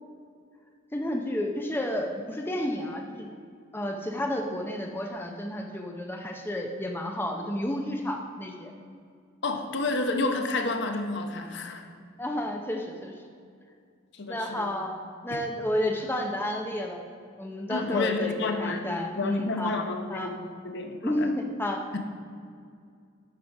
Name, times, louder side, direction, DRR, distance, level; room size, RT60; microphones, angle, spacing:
voice 1, 0.9-3.3 3.7-8.7 12.2-13.1 14.3-15.0 15.2-17.0 17.4-19.8 20.1-20.3 21.0-21.8, left 1 dB, 10° left, 2 dB, 0.6 m, -31 dB
voice 2, 9.4-11.8 14.1-14.7 15.3-15.4 17.7-20.3 20.6-21.3 21.9-22.0, left 3 dB, 55° left, 5 dB, 0.8 m, -30 dB
9.5 x 5.0 x 5.9 m, 2.3 s
head